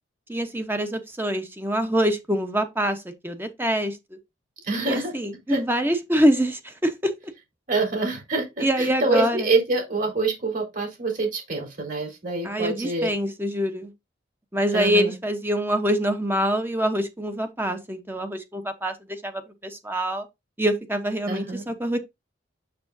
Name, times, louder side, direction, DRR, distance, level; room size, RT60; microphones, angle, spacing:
voice 1, 0.3-4.2 4.9-7.1 8.6-9.5 12.4-13.9 14.5-20.3 20.6-22.0, equal, 10° right, 0.8 m, -25 dB
voice 2, 4.6-5.1 5.5-5.6 7.7-13.1 14.7-15.1 21.3-21.6, right 3 dB, 45° right, 3.7 m, -26 dB
6.8 x 6.6 x 2.6 m
head